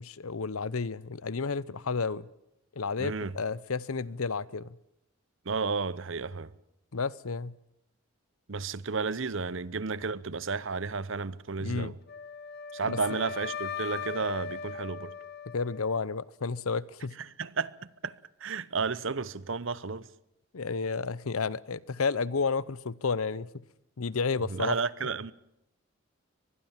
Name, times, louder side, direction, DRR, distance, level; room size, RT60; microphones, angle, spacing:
voice 1, 0.0-2.3 2.8-4.7 6.9-7.6 11.6-12.0 12.8-13.0 15.5-17.1 20.5-23.5 24.0-24.7, left 4 dB, 80° left, 0.8 m, -31 dB
voice 2, 3.0-3.3 5.5-6.5 8.5-11.9 12.7-15.1 17.4-17.8 18.0-18.1 18.4-20.1 24.5-25.3, right 4 dB, 65° right, 0.8 m, -32 dB
Wind instrument woodwind instrument, 12.1-16.2, left 5 dB, 45° left, 1.1 m, -39 dB
24.0 x 20.5 x 7.4 m
head